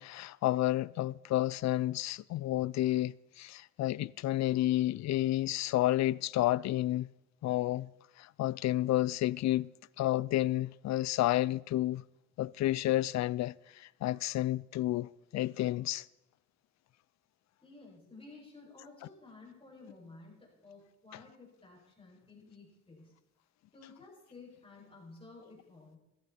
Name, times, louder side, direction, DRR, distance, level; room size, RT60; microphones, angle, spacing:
voice 1, 0.0-7.1 7.4-7.9 8.2-9.7 10.0-12.0 12.4-16.1, left 15 dB, 65° left, 0.4 m, -30 dB
voice 2, 17.6-23.1 23.7-26.0, left 3 dB, 20° left, 6.8 m, -54 dB
15.0 x 14.5 x 4.3 m
cardioid pair, 90°, 30 cm